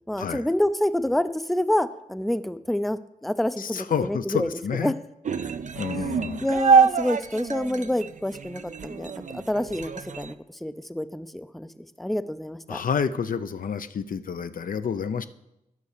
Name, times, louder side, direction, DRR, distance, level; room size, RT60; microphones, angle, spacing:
voice 1, 0.1-4.5 4.8-4.9 6.4-11.7 12.0-12.8, left 1 dB, ahead, 13 dB, 0.5 m, -27 dB
voice 2, 3.6-4.9 5.4-6.5 12.7-15.3, left 7 dB, 65° left, 11 dB, 0.5 m, -29 dB
sound 1, 5.2-10.3, right 6 dB, 55° right, 0.5 m, -25 dB
9.7 x 5.6 x 6.6 m, 0.87 s
cardioid pair, 50°, 15 cm